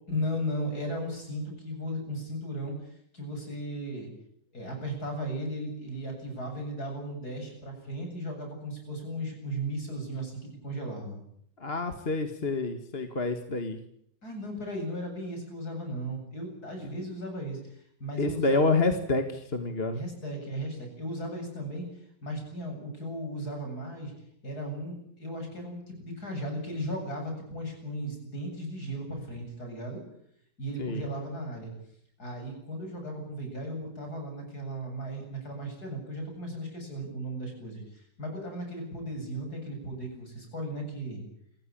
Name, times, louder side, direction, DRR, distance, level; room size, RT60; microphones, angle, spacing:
voice 1, 0.1-4.1 4.5-11.2 14.2-18.6 19.9-21.9 22.2-24.1 24.4-30.0 30.6-31.7 32.2-41.2, equal, 65° left, 3 dB, 8.5 m, -36 dB
voice 2, 11.6-13.8 18.2-20.0 30.8-31.1, left 3 dB, 35° left, 7 dB, 2.0 m, -28 dB
28.5 x 15.5 x 8.8 m, 0.70 s
omnidirectional pair, 1.8 m